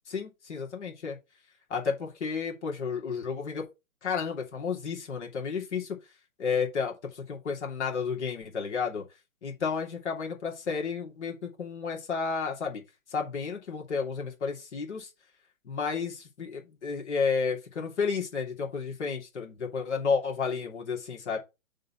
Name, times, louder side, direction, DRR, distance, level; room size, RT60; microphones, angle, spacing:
voice 1, 0.1-1.2 1.7-3.7 4.0-6.0 6.4-9.0 9.4-12.8 13.1-15.1 15.6-21.4, left 5 dB, 55° left, 2.9 m, -32 dB
6.5 x 4.0 x 5.8 m
figure-of-eight pair, 125°, 41 cm